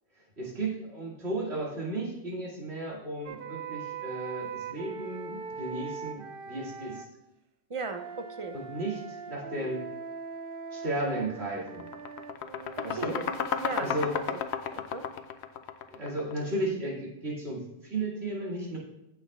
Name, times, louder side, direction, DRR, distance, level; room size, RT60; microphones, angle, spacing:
voice 1, 0.4-7.0 8.5-9.8 10.7-11.9 12.8-13.2 13.8-14.1 15.9-18.8, right 2 dB, 80° right, -5 dB, 2.8 m, -34 dB
sound 1, 3.2-7.1 7.9-14.4, right 5 dB, 65° right, 0.8 m, -41 dB
voice 2, 7.7-8.6 12.8-13.3 13.6-14.0 14.3-14.4 14.7-15.0, right 4 dB, 35° right, 7 dB, 0.7 m, -36 dB
sound 2, 10.9-11.1 11.5-16.4, left 7 dB, 85° left, 0.9 m, -33 dB
15.5 x 6.3 x 2.4 m, 0.93 s
omnidirectional pair, 1.1 m